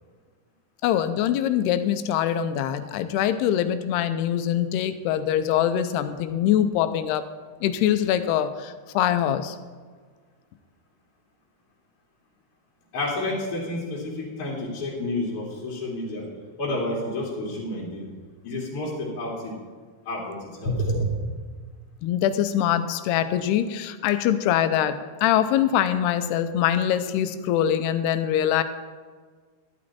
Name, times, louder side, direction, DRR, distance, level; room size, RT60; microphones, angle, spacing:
voice 1, 0.8-7.2 7.6-9.6 22.0-28.6, left 10 dB, 85° left, 10 dB, 2.6 m, -23 dB
voice 2, 12.9-16.2 16.6-18.1 18.4-19.6 20.0-21.2, left 1 dB, 40° left, -5 dB, 2.8 m, -29 dB
12.0 x 12.0 x 4.2 m, 1.5 s
omnidirectional pair, 4.7 m